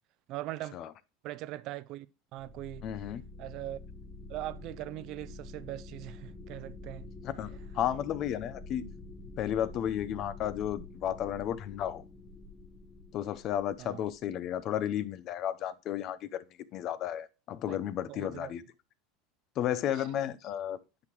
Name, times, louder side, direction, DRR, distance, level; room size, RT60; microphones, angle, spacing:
voice 1, 0.3-0.8 1.2-2.1 2.3-2.9 3.4-3.8 4.3-7.1 13.8-14.1 17.7-18.5 19.9-20.1, right 15 dB, 55° right, 0.5 m, -41 dB
sound 1, 2.4-14.6, left 2 dB, 25° left, 1.3 m, -47 dB
voice 2, 2.8-3.2 7.2-8.8 9.4-12.0 13.1-16.4 16.7-18.6 19.6-20.8, left 10 dB, 45° left, 0.7 m, -33 dB
9.6 x 6.0 x 3.0 m
supercardioid pair, 125°, 0 cm